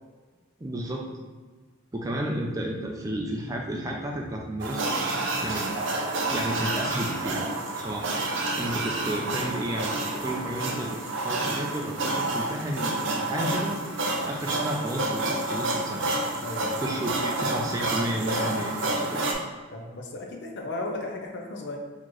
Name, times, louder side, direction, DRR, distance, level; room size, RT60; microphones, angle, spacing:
voice 1, 0.6-1.1 1.9-4.9 5.4-5.7 6.3-7.4 7.7-8.1 8.6-13.8 14.2-16.0 16.8-19.2, right 1 dB, 15° right, -1 dB, 0.4 m, -32 dB
sound 1, 4.6-19.3, right 2 dB, 60° right, 0.6 m, -29 dB
voice 2, 16.4-16.9 19.7-21.8, left 2 dB, 55° left, 1 dB, 0.6 m, -35 dB
4.3 x 3.0 x 3.0 m, 1.4 s
head